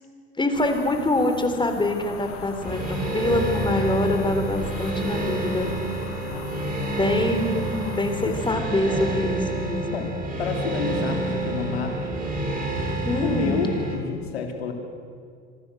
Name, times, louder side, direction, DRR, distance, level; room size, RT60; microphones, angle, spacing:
voice 1, 0.4-5.7 6.9-10.0 13.0-13.6, left 1 dB, 15° left, 6 dB, 4.2 m, -25 dB
sound 1, 0.5-8.5, left 7 dB, 65° left, 2.7 m, -40 dB
sound 2, 2.6-14.0, right 2 dB, 30° right, 7.7 m, -29 dB
voice 2, 6.2-7.0 8.2-8.3 8.8-9.2 9.9-10.1 10.4-12.3 13.2-14.7, left 5 dB, 85° left, 3 dB, 3.6 m, -30 dB
26.0 x 24.5 x 6.6 m, 2.2 s
hypercardioid pair, 75°, 31 cm